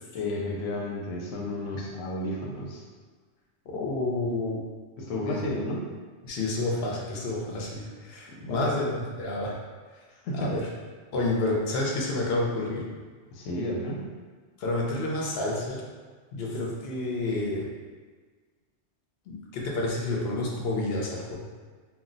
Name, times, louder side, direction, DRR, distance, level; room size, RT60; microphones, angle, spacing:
voice 1, 0.1-2.8 5.0-5.8 8.4-8.8 10.2-10.6 13.3-14.1, left 1 dB, 85° left, -2 dB, 0.9 m, -32 dB
voice 2, 3.7-4.6 5.1-5.4 6.2-8.9 9.2-9.6 10.3-10.7 11.1-12.8 14.6-15.8 16.3-17.7 19.3-21.4, left 2 dB, 60° left, -2 dB, 0.7 m, -29 dB
2.3 x 2.0 x 3.7 m, 1.5 s
omnidirectional pair, 1.3 m